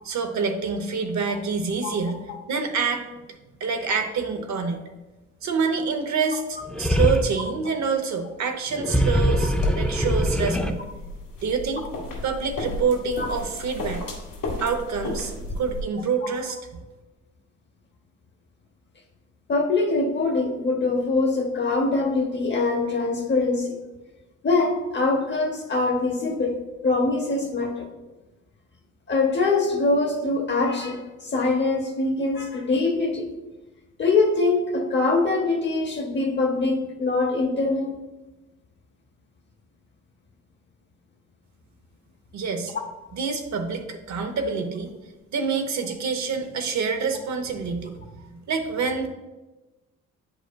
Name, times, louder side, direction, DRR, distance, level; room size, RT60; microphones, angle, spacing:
voice 1, 0.0-3.1 3.6-4.8 5.4-10.8 11.4-11.9 12.2-14.0 14.6-16.6 42.3-42.7 43.1-44.9 45.3-49.1, right 5 dB, 65° right, 6 dB, 0.8 m, -27 dB
sound 1, 6.7-7.3 8.7-10.7, equal, 5° left, 0.3 m, -23 dB
sound 2, 9.1-15.8, left 2 dB, 90° left, 1.7 m, -33 dB
voice 2, 19.5-23.8 24.4-26.6 26.8-27.9 29.1-33.3 34.0-37.9, left 3 dB, 35° left, 2 dB, 0.7 m, -23 dB
9.1 x 5.0 x 2.2 m, 1.1 s
cardioid pair, 130°, 30 cm